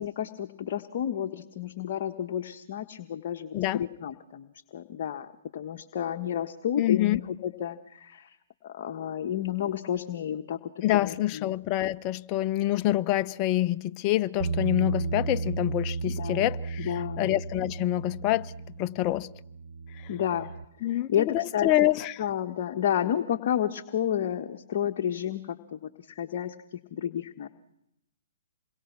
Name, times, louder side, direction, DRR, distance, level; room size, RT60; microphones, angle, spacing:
voice 1, 0.0-8.4 8.6-11.5 16.1-16.5 16.8-17.2 20.1-20.5 21.1-21.9 22.2-27.5, left 10 dB, 50° left, 1.3 m, -31 dB
voice 2, 3.5-3.9 6.8-7.2 10.8-18.5 18.8-19.3 20.8-22.2, left 15 dB, 30° left, 0.8 m, -26 dB
Bass guitar, 14.4-20.6, right 4 dB, 65° right, 1.2 m, -34 dB
27.5 x 22.5 x 6.0 m
figure-of-eight pair, 125°, 0 cm